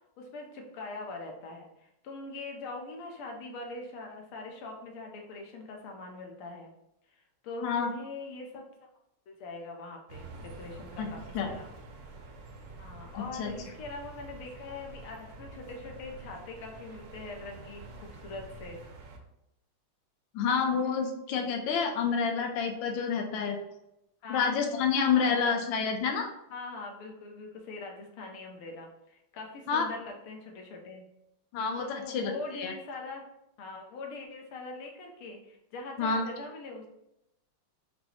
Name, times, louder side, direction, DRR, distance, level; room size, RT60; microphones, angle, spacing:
voice 1, 0.2-6.7 7.1-8.7 9.3-11.7 12.8-18.8 24.2-24.6 25.1-25.6 26.5-31.0 31.8-33.2 33.6-36.9, left 3 dB, 90° left, 1 dB, 1.7 m, -42 dB
voice 2, 7.6-7.9 11.0-11.1 11.3-11.5 13.1-13.5 20.3-23.6 24.3-26.3 29.7-29.8 31.5-32.7 36.0-36.2, left 6 dB, 75° left, 3 dB, 1.3 m, -28 dB
sound 1, 10.1-19.2, right 3 dB, 65° right, 0.9 m, -47 dB
5.2 x 2.0 x 4.3 m, 0.85 s
omnidirectional pair, 2.3 m